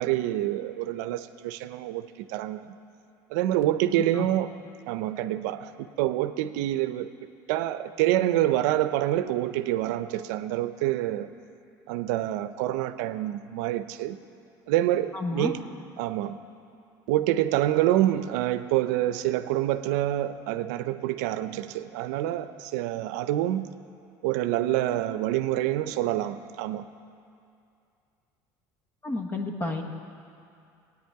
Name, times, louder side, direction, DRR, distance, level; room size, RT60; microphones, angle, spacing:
voice 1, 0.0-2.7 3.3-4.5 4.9-7.1 7.5-11.3 11.9-14.2 14.7-15.6 16.0-16.4 17.1-23.7 24.2-26.8, right 13 dB, 90° right, 12 dB, 0.5 m, -27 dB
voice 2, 3.9-4.3 15.1-15.6 29.0-29.8, left 2 dB, 20° left, 3 dB, 1.3 m, -31 dB
19.5 x 9.4 x 4.7 m, 2.5 s
cardioid pair, 135°, 9 cm